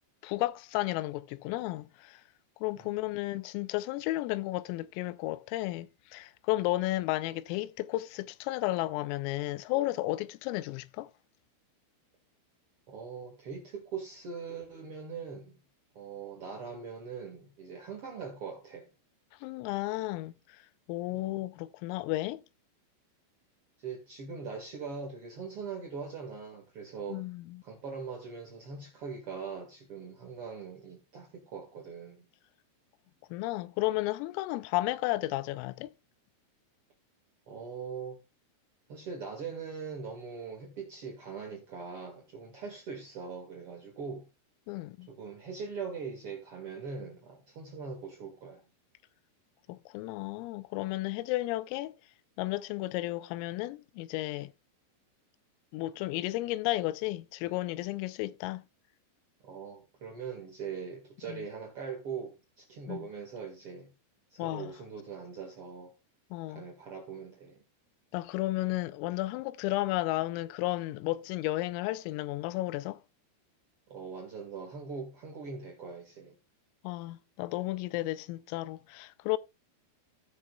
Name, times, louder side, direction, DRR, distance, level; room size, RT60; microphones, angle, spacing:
voice 1, 0.2-2.2 2.6-11.1 19.4-20.3 20.9-22.4 27.1-27.6 33.3-35.9 44.7-45.1 49.7-52.0 52.4-54.5 55.7-58.6 61.3-61.4 62.9-63.1 64.4-64.7 66.3-66.6 68.1-73.0 76.8-79.4, left 18 dB, 90° left, 3.3 m, -33 dB
voice 2, 12.9-15.6 15.9-18.9 21.1-21.5 23.8-27.2 27.6-32.3 37.5-38.2 38.9-44.2 45.1-48.6 59.4-63.9 64.3-65.9 66.5-67.6 73.9-76.4, right 5 dB, 70° right, 1.3 m, -41 dB
17.5 x 6.7 x 2.3 m
omnidirectional pair, 5.8 m